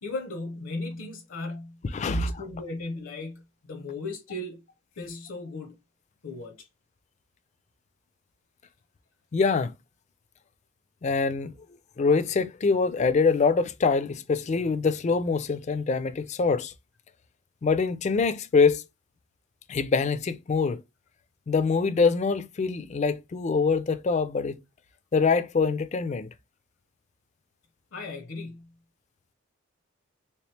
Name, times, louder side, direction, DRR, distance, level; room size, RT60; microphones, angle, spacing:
voice 1, 0.0-1.8 2.1-4.6 5.0-5.7 6.2-6.7 27.9-28.7, left 2 dB, 65° left, 0.6 m, -36 dB
voice 2, 1.9-2.3 9.3-9.7 11.0-11.5 12.0-16.7 17.6-18.8 19.7-20.8 21.5-24.6 25.1-26.3, left 4 dB, 35° left, 0.3 m, -24 dB
3.4 x 2.9 x 3.2 m
head